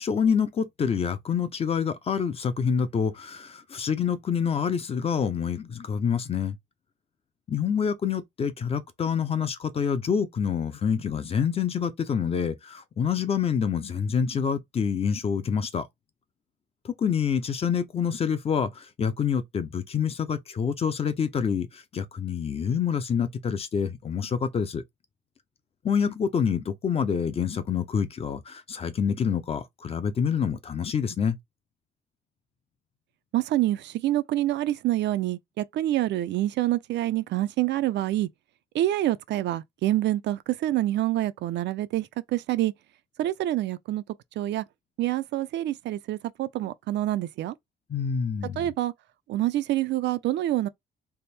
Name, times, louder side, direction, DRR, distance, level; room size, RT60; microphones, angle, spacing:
voice 1, 0.0-6.6 7.5-15.9 16.8-24.8 25.8-31.4 47.9-48.7, left 7 dB, 30° left, 0.5 m, -27 dB
voice 2, 33.3-38.3 38.7-42.7 43.2-44.0 44.4-44.6 45.0-47.6 48.6-48.9 49.3-50.7, right 14 dB, 65° right, 0.4 m, -26 dB
3.4 x 2.0 x 4.1 m
cardioid pair, 150°, 19 cm